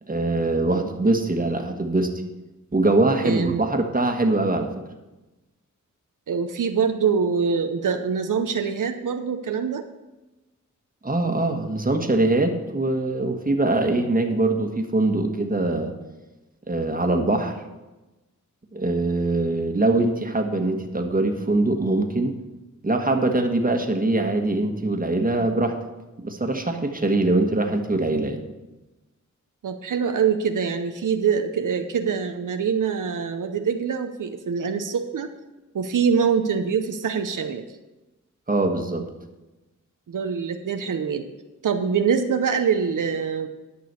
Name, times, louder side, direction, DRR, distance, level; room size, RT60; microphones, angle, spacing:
voice 1, 0.1-2.1 2.7-4.7 11.0-15.9 16.7-17.5 18.7-22.3 22.8-25.7 26.2-28.4 38.5-39.0, right 2 dB, 30° right, 4 dB, 1.4 m, -22 dB
voice 2, 3.2-3.6 6.3-9.8 29.6-35.3 35.7-37.6 40.1-41.3 41.6-43.5, right 6 dB, 85° right, 7 dB, 0.7 m, -24 dB
11.0 x 6.1 x 6.8 m, 1.1 s
wide cardioid pair, 65°, 31 cm